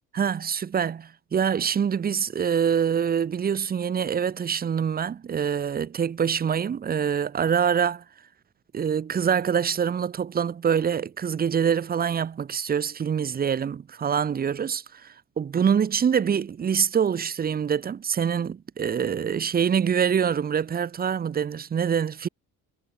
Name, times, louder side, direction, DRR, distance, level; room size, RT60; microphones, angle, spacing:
voice 1, 0.1-8.0 8.7-22.3, right 7 dB, 25° right, 0.7 m, -25 dB
cardioid pair, 145°, 36 cm